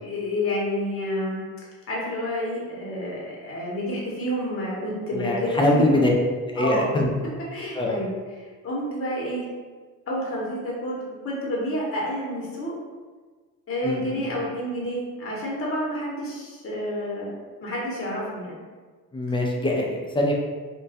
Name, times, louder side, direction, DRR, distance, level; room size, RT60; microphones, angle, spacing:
voice 1, 0.0-1.4 1.9-6.0 6.6-6.9 7.5-9.5 10.1-10.9 11.2-12.7 13.7-17.3 17.6-18.6, equal, 40° left, -4 dB, 0.9 m, -29 dB
voice 2, 5.1-6.1 6.5-7.1 7.8-8.0 13.8-14.2 19.1-20.3, left 1 dB, 15° left, -1 dB, 0.4 m, -23 dB
2.2 x 2.2 x 2.7 m, 1.4 s
supercardioid pair, 80°, 35 cm